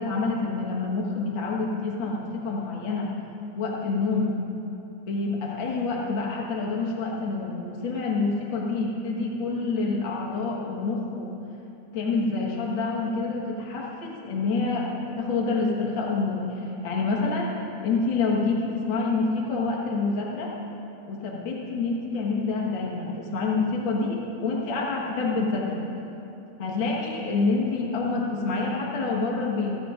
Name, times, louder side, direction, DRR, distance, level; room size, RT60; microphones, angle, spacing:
voice 1, 0.0-3.1 3.5-4.3 5.1-11.3 11.9-20.5 21.1-25.8 26.6-29.8, left 3 dB, 75° left, -3 dB, 1.1 m, -27 dB
27.0 x 14.0 x 2.5 m, 2.9 s
omnidirectional pair, 4.6 m